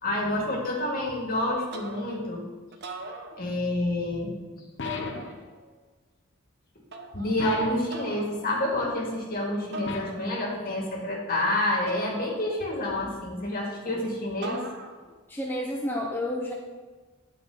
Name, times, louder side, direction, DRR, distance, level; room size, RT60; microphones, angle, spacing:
voice 1, 0.0-2.4 3.4-4.6 7.1-14.6, left 1 dB, 45° left, -2 dB, 2.4 m, -28 dB
sound 1, 1.7-2.3 2.7-3.9 4.8-5.7 6.9-7.4 7.9-8.4 9.7-10.6 11.9-12.8 14.4-15.2, right 2 dB, 55° right, 1.0 m, -41 dB
sound 2, 4.8-5.4 7.4-8.0 9.9-10.3, left 4 dB, 60° left, 1.0 m, -35 dB
voice 2, 15.3-16.5, left 1 dB, 10° left, -2 dB, 0.7 m, -30 dB
9.6 x 5.0 x 6.6 m, 1.3 s
head